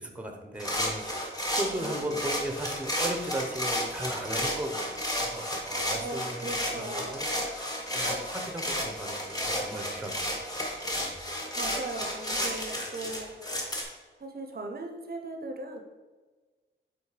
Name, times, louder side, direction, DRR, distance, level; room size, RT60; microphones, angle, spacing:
voice 1, 0.0-6.4 6.8-10.2 10.5-10.6 10.9-11.2, right 1 dB, 5° right, 3 dB, 0.8 m, -37 dB
sound 1, 0.6-13.8, equal, 20° left, 1.1 m, -32 dB
voice 2, 1.8-2.2 6.0-7.2 11.6-13.3 14.1-15.8, right 2 dB, 50° right, 4 dB, 0.6 m, -38 dB
5.5 x 4.3 x 4.9 m, 1.3 s
wide cardioid pair, 135°, 20 cm